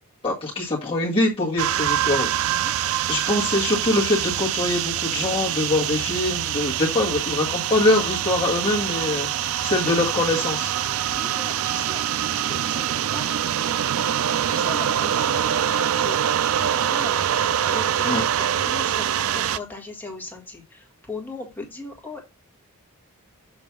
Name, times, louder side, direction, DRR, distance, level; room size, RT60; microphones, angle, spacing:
voice 1, 0.2-10.7 18.0-18.2, left 2 dB, 25° left, 1.6 m, -24 dB
sound 1, 1.6-19.6, right 10 dB, 65° right, 0.4 m, -24 dB
voice 2, 11.1-12.0 12.5-13.5 14.1-16.2 16.6-17.4 17.7-22.2, left 3 dB, 10° left, 1.8 m, -39 dB
7.1 x 3.0 x 5.9 m
head